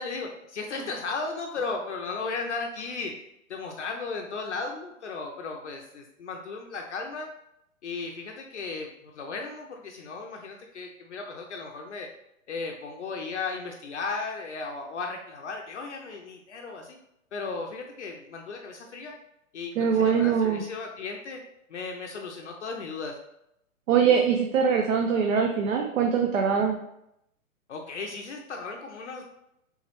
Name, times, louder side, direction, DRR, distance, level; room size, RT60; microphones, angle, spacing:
voice 1, 0.0-3.2 3.5-7.3 7.8-12.1 12.5-17.0 17.3-19.1 19.5-21.4 21.7-23.2 27.7-29.2, left 4 dB, 55° left, 2 dB, 0.5 m, -35 dB
voice 2, 19.8-20.6 23.9-26.8, right 6 dB, 65° right, 2 dB, 0.6 m, -23 dB
3.4 x 3.0 x 3.0 m, 0.81 s
hypercardioid pair, 165°, 42 cm